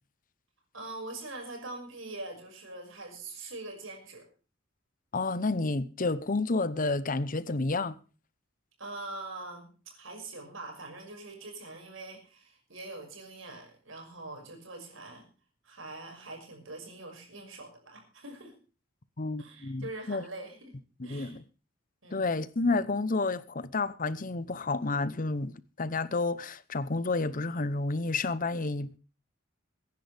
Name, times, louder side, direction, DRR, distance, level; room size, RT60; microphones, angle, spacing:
voice 1, 0.7-4.3 8.8-15.3 15.6-18.6 19.4-20.7 21.0-21.4 22.0-22.2, right 2 dB, 75° right, 5.9 m, -43 dB
voice 2, 5.1-8.0 19.2-20.2 21.0-21.4 22.1-29.0, left 3 dB, 40° left, 0.8 m, -30 dB
23.0 x 10.5 x 3.4 m
head